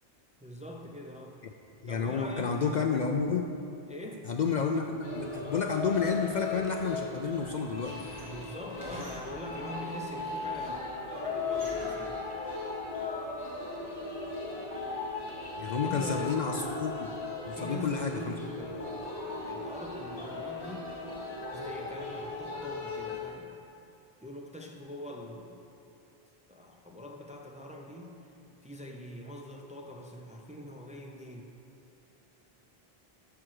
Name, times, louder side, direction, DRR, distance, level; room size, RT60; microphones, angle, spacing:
voice 1, 0.4-1.4 1.9-2.8 3.9-4.3 8.3-12.2 15.7-16.4 17.6-20.9 21.5-23.5 24.2-25.6 26.5-28.1 28.6-31.5, left 1 dB, 10° right, 2 dB, 0.5 m, -43 dB
voice 2, 1.8-3.5 4.3-8.1 15.6-17.1 17.4-18.3, left 5 dB, 55° left, 4 dB, 0.5 m, -30 dB
sound 1, 5.0-23.2, left 3 dB, 90° left, 2.2 m, -37 dB
sound 2, 7.8-9.7 10.2-10.9 11.5-12.2, right 1 dB, 55° right, 1.6 m, -48 dB
12.5 x 6.1 x 4.7 m, 2.7 s
omnidirectional pair, 1.0 m